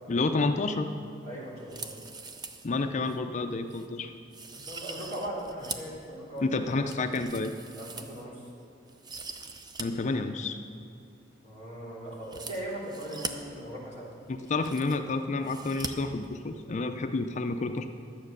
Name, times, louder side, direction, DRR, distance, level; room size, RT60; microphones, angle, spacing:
voice 1, 0.1-0.9 2.6-4.1 6.4-7.5 9.8-10.6 14.3-17.9, left 3 dB, 40° left, 7 dB, 0.5 m, -29 dB
voice 2, 1.2-1.9 4.5-6.4 7.1-7.2 7.8-8.4 11.4-14.1, right 1 dB, 40° right, -6 dB, 3.4 m, -39 dB
sound 1, 1.6-2.7 3.1-3.2 3.7-3.9 4.3-6.0 6.4-8.5 8.9-9.8 10.1-10.2 12.2-13.3 14.1-14.2 14.4-15.1 15.4-15.9 16.2-16.3, right 4 dB, 20° right, 0.6 m, -41 dB
12.0 x 8.1 x 6.6 m, 2.4 s
head